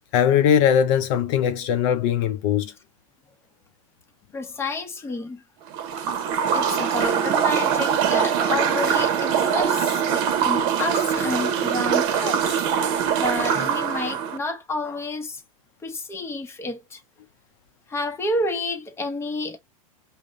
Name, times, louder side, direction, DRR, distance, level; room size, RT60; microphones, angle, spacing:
voice 1, 0.1-2.7, left 9 dB, 55° left, 0.6 m, -20 dB
voice 2, 4.3-5.4 6.2-12.9 13.2-15.4 15.8-17.0 17.9-19.6, left 2 dB, 15° left, 0.9 m, -30 dB
sound 1, 5.7-14.4, right 8 dB, 50° right, 0.8 m, -23 dB
5.2 x 2.1 x 3.7 m
supercardioid pair, 130°, 18 cm